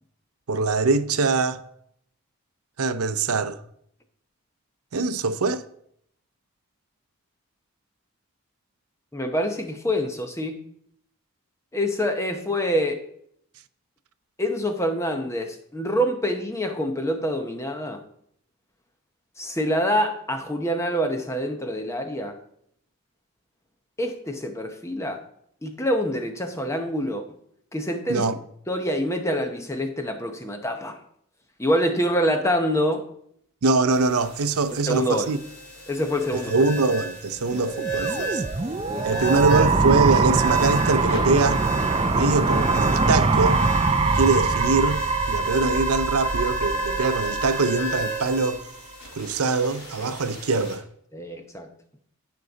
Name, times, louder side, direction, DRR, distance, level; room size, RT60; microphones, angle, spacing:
voice 1, 0.5-1.6 2.8-3.6 4.9-5.6 28.1-28.4 33.6-35.4 36.5-38.4 39.0-41.6 42.1-43.6 44.1-45.0 45.3-48.6 49.1-50.8, right 3 dB, 80° right, 0.6 m, -23 dB
voice 2, 9.1-10.6 11.7-13.0 14.4-18.0 19.4-22.4 24.0-25.2 25.6-27.3 27.7-28.3 28.7-31.0 31.6-33.1 34.9-35.3 35.9-36.5 37.5-37.6 38.9-39.1 51.1-51.7, equal, 15° left, 0.8 m, -26 dB
sound 1, 33.9-50.7, right 2 dB, 50° left, 4.2 m, -34 dB
sound 2, 37.7-48.6, right 4 dB, 25° right, 0.4 m, -23 dB
14.5 x 5.4 x 4.0 m
head